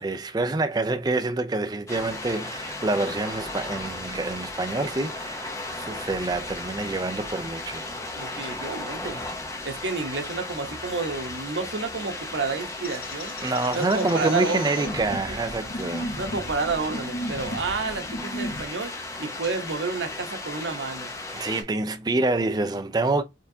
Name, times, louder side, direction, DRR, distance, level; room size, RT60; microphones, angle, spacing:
voice 1, 0.0-7.9 13.4-16.1 21.3-23.2, right 2 dB, 20° right, 0.4 m, -27 dB
sound 1, 1.9-21.6, left 2 dB, 15° left, 0.7 m, -35 dB
voice 2, 8.2-9.2 9.6-13.3 13.7-14.9 16.2-21.1, right 4 dB, 85° right, 0.9 m, -30 dB
sound 2, 12.8-18.6, equal, 55° left, 2.2 m, -35 dB
4.4 x 3.5 x 2.7 m
head